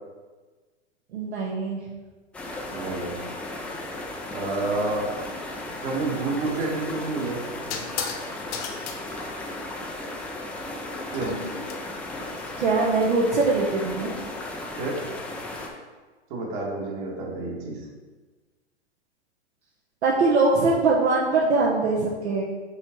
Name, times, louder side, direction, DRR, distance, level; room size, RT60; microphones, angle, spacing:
voice 1, 1.1-1.8 12.6-14.1 20.0-22.4, right 3 dB, 65° right, -4 dB, 1.1 m, -22 dB
sound 1, 2.3-15.7, left 2 dB, 5° left, 0.4 m, -35 dB
voice 2, 2.7-3.2 4.3-5.1 5.8-7.4 11.1-11.3 14.8-15.0 16.3-17.8, right 3 dB, 45° right, -2 dB, 1.9 m, -29 dB
sound 2, 6.4-6.6 7.7-8.2 8.5-9.0 11.1-11.7, left 6 dB, 40° left, 0.9 m, -33 dB
5.5 x 4.1 x 4.4 m, 1.3 s
hypercardioid pair, 110°, 35 cm